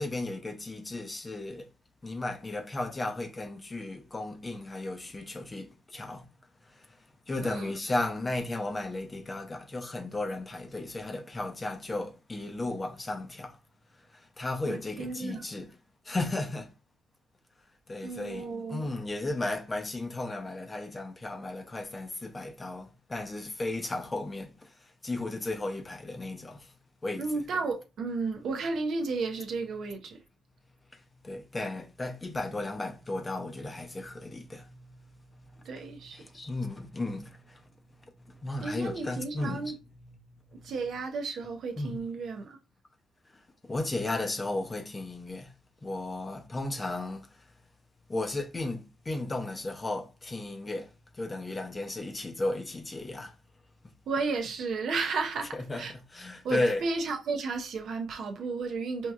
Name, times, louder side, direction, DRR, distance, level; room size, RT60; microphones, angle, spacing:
voice 1, 0.0-1.7 2.0-6.3 6.7-7.0 7.3-13.6 14.1-15.7 16.0-16.7 17.9-26.7 27.0-27.6 30.9-37.6 38.2-40.2 40.5-41.0 41.8-42.0 43.3-45.5 45.8-47.3 48.1-53.3 55.5-56.8, left 2 dB, 25° left, 0.6 m, -35 dB
voice 2, 7.4-7.7 14.7-15.5 18.0-18.9 27.2-30.2 35.6-36.2 38.6-39.7 40.6-42.6 54.1-55.5 55.8-55.9 56.4-59.1, right 4 dB, 65° right, 0.6 m, -33 dB
4.5 x 2.7 x 2.3 m
cardioid pair, 90°, 0 cm